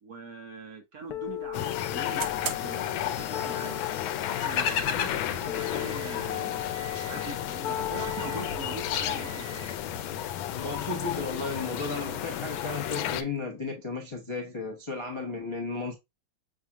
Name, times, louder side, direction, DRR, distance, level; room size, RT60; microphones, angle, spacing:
voice 1, 0.0-3.7 4.3-9.6, right 4 dB, 55° right, 1.3 m, -42 dB
sound 1, 1.0-13.4, right 7 dB, 80° right, 0.7 m, -46 dB
sound 2, 1.1-11.1, left 13 dB, 70° left, 0.9 m, -38 dB
sound 3, 1.5-13.2, left 10 dB, 85° left, 1.4 m, -32 dB
voice 2, 10.5-15.9, left 3 dB, 35° left, 0.5 m, -34 dB
6.4 x 2.5 x 2.7 m
omnidirectional pair, 2.2 m